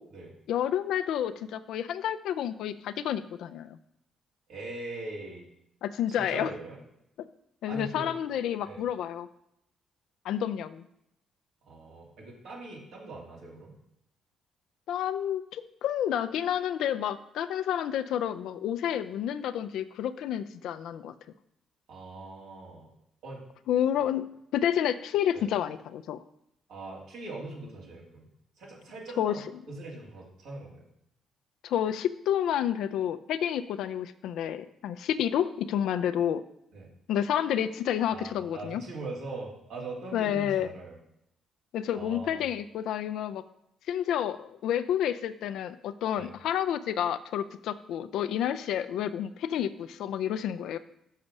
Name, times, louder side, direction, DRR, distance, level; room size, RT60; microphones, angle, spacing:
voice 1, 0.5-3.8 5.8-6.5 7.6-9.3 10.2-10.8 14.9-21.1 23.7-24.3 24.5-26.2 29.2-29.6 31.6-36.4 37.1-38.8 40.1-40.7 41.7-43.4 43.9-50.8, left 10 dB, 75° left, 12 dB, 0.4 m, -30 dB
voice 2, 4.5-5.4 6.1-6.8 7.7-8.1 8.6-8.8 11.7-13.7 21.9-22.9 23.2-23.4 23.9-24.0 25.3-25.5 26.7-28.3 28.6-30.8 36.7-36.9 38.1-41.0 41.9-42.5 46.1-46.3, right 2 dB, 75° right, -4 dB, 2.9 m, -41 dB
6.5 x 5.9 x 5.3 m, 0.80 s
supercardioid pair, 65°, 0 cm